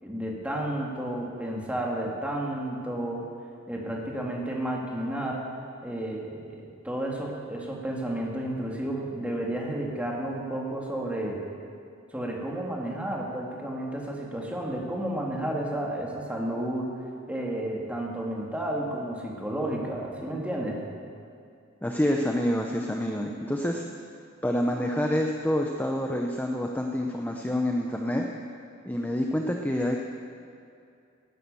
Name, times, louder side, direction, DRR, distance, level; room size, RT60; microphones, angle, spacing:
voice 1, 0.0-3.3 3.7-5.5 5.8-11.4 12.1-16.9 17.3-20.8, right 1 dB, 5° right, -2 dB, 2.4 m, -32 dB
voice 2, 21.8-23.8 24.4-28.3 28.8-30.0, left 1 dB, 10° left, 1 dB, 0.8 m, -27 dB
19.0 x 11.0 x 7.0 m, 2.4 s
head